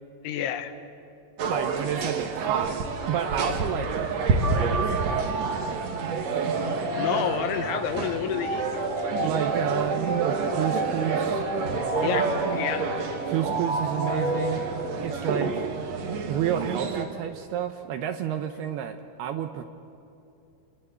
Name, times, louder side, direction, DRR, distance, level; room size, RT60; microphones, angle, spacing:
voice 1, 0.2-0.7 7.0-8.8 12.0-12.9 15.3-15.6, left 9 dB, 75° left, 9 dB, 3.6 m, -30 dB
sound 1, 1.4-17.1, right 4 dB, 60° right, 1.8 m, -29 dB
voice 2, 1.5-2.8 3.1-6.2 9.2-11.4 12.0-12.6 13.3-14.7 15.0-15.6 16.3-19.6, right 10 dB, 80° right, 7 dB, 2.4 m, -31 dB
sound 2, 4.4-15.1, right 2 dB, 35° right, 1.1 m, -31 dB
29.0 x 23.0 x 8.3 m, 2.7 s
omnidirectional pair, 5.6 m